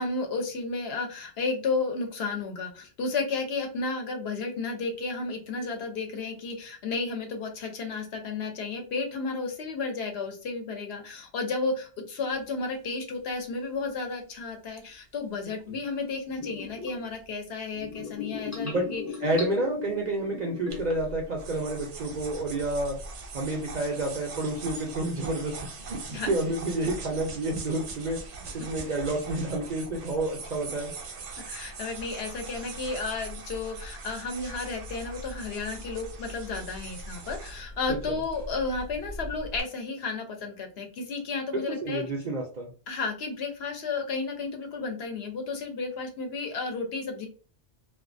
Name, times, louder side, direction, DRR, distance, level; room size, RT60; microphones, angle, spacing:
voice 1, 0.0-19.0 26.1-26.3 31.5-42.0 42.9-47.3, left 4 dB, 65° left, 4 dB, 0.8 m, -32 dB
sound 1, 12.3-12.4 14.8-14.9 16.3-17.1 17.7-21.1 21.4-21.9 22.6-23.1, left 5 dB, 20° left, 0.5 m, -37 dB
voice 2, 19.2-22.9 23.3-25.5 25.8-28.2 28.5-30.9 38.1-38.2 41.5-42.7, right 2 dB, 55° right, 0 dB, 0.5 m, -29 dB
sound 2, 20.7-39.6, right 2 dB, 80° right, 0.9 m, -41 dB
2.3 x 2.2 x 2.4 m, 0.38 s
omnidirectional pair, 1.2 m